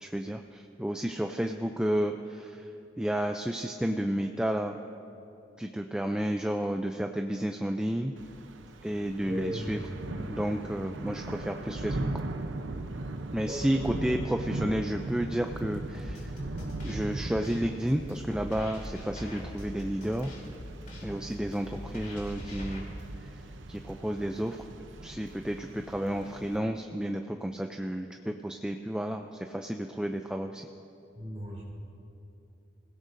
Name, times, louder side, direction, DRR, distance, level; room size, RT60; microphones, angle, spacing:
voice 1, 0.0-2.7 3.0-4.8 5.6-8.1 8.8-9.8 10.2-12.1 13.3-16.4 16.8-20.3 21.0-22.9 23.2-24.6 25.0-30.7, right 1 dB, 5° right, 4 dB, 0.3 m, -31 dB
Thunder / Rain, 8.2-26.6, right 2 dB, 80° right, 0.7 m, -39 dB
voice 2, 9.2-10.3 13.4-13.9 31.1-31.6, equal, 35° right, -5 dB, 2.7 m, -37 dB
sound 1, 15.9-22.8, equal, 45° left, 3.3 m, -43 dB
26.5 x 16.5 x 2.6 m, 2.9 s
head